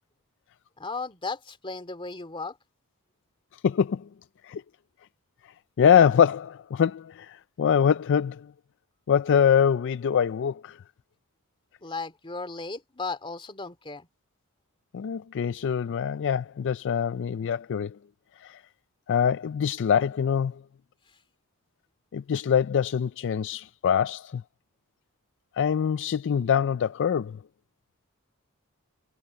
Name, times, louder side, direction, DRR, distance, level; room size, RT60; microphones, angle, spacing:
voice 1, 0.8-2.6 11.8-14.1, left 3 dB, 25° left, 2.6 m, -35 dB
voice 2, 3.6-4.1 4.4-4.6 5.8-8.5 9.1-10.8 14.9-18.0 18.4-18.6 19.1-20.6 22.1-24.4 25.5-27.4, left 7 dB, 55° left, 0.4 m, -24 dB
head